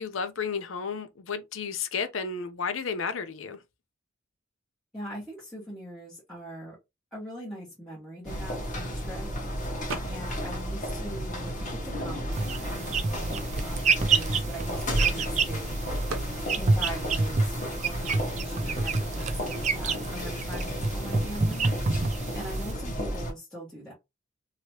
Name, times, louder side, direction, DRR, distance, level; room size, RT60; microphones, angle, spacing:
voice 1, 0.0-3.6, left 5 dB, 70° left, 0.6 m, -32 dB
voice 2, 4.9-6.8 7.1-9.3 10.0-15.8 16.6-17.5 17.8-21.7 22.3-23.9, equal, 5° left, 1.4 m, -41 dB
sound 1, 8.2-23.3, equal, 40° left, 1.4 m, -33 dB
sound 2, 9.9-10.5 10.8-12.1 12.7-12.8 13.0-15.2 16.1-16.4, right 3 dB, 80° right, 0.7 m, -41 dB
sound 3, 12.3-22.7, right 4 dB, 35° right, 0.4 m, -29 dB
3.1 x 2.9 x 2.8 m
head